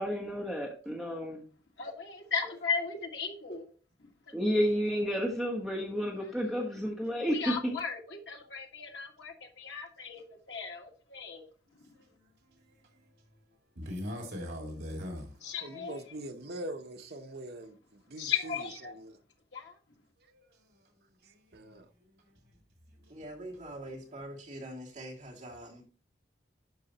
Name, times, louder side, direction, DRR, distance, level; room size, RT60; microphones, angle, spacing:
voice 1, 0.0-1.4 4.3-7.8, equal, ahead, 1.2 m, -31 dB
voice 2, 1.8-3.7 7.3-11.4 15.4-16.0 18.2-18.9 19.5-19.7, left 6 dB, 75° left, 1.8 m, -36 dB
voice 3, 12.4-13.1 13.8-15.5 20.2-20.8 21.2-21.5 22.0-22.3 23.0-23.2, left 1 dB, 70° right, 2.1 m, -42 dB
voice 4, 15.6-19.2 21.2-21.9, right 1 dB, 55° right, 0.9 m, -43 dB
voice 5, 23.1-25.9, right 1 dB, 40° right, 2.7 m, -44 dB
12.0 x 4.8 x 2.9 m
head